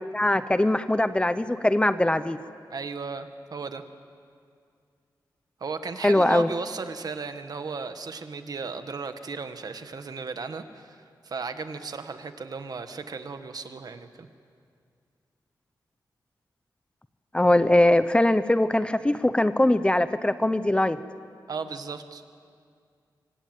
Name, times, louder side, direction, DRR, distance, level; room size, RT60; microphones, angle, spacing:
voice 1, 0.1-2.4 6.0-6.5 17.3-21.0, left 1 dB, 15° left, 12 dB, 0.7 m, -21 dB
voice 2, 2.7-3.8 5.6-11.0 11.2-14.3 21.5-22.2, right 4 dB, 60° right, 8 dB, 1.6 m, -35 dB
25.5 x 24.5 x 9.2 m, 2.3 s
wide cardioid pair, 145°, 8 cm